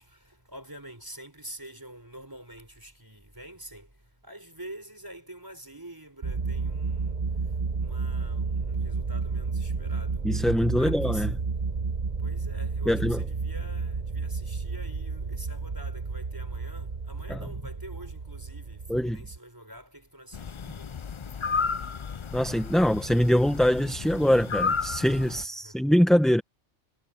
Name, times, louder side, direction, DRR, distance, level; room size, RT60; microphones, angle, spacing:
voice 1, 0.0-3.9 4.2-7.2 7.8-10.2 10.7-11.3 12.2-20.9 25.6-25.7, right 1 dB, 15° right, 4.7 m, -46 dB
sound 1, 6.2-19.4, right 4 dB, 40° right, 1.1 m, -31 dB
voice 2, 10.2-11.3 12.8-13.2 17.3-17.5 18.9-19.2 22.3-26.4, equal, ahead, 1.2 m, -23 dB
sound 2, 20.3-25.4, left 5 dB, 50° left, 0.3 m, -32 dB
omnidirectional pair, 1.2 m